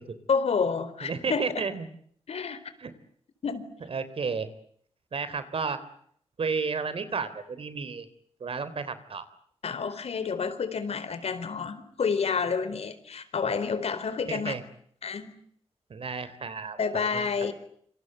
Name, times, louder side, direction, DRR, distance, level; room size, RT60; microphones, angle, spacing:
voice 1, 0.3-1.6 2.3-2.6 3.4-3.7 9.6-14.5 15.0-15.4 16.8-17.5, left 5 dB, 65° left, 12 dB, 4.2 m, -29 dB
voice 2, 1.0-1.9 2.8-2.9 3.9-4.5 5.1-5.8 6.4-8.1 8.4-9.3 14.3-14.6 15.9-17.3, right 5 dB, 55° right, 14 dB, 3.6 m, -32 dB
27.0 x 27.0 x 8.0 m, 0.65 s
wide cardioid pair, 105°, 11 cm